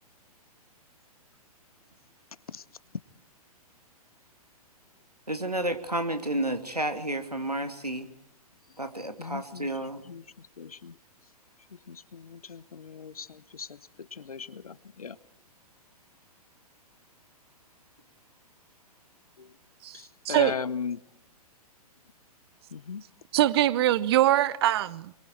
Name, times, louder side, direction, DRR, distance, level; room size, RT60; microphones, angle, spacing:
voice 1, 5.3-8.1 8.8-10.0, right 1 dB, 85° right, 2.5 m, -31 dB
voice 2, 9.2-9.7 10.1-11.0 11.9-15.2 19.4-19.5 19.9-21.0 22.7-23.0, left 6 dB, 70° left, 1.1 m, -38 dB
voice 3, 19.8-20.5 23.3-25.1, right 13 dB, 40° right, 0.8 m, -23 dB
26.0 x 23.0 x 4.6 m
figure-of-eight pair, 115°, 20 cm